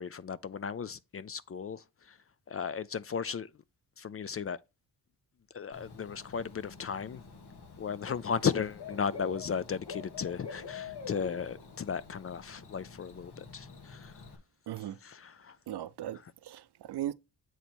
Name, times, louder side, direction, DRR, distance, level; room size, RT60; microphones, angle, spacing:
voice 1, 0.0-2.2 2.5-3.5 4.0-4.6 5.5-7.2 7.8-14.1 15.0-15.6, left 6 dB, 35° left, 0.4 m, -35 dB
Bird / Cricket, 5.7-14.4, left 5 dB, 65° left, 1.6 m, -46 dB
voice 2, 14.7-15.0 15.7-17.1, right 12 dB, 70° right, 0.6 m, -38 dB
8.1 x 3.1 x 4.4 m
cardioid pair, 70°, 42 cm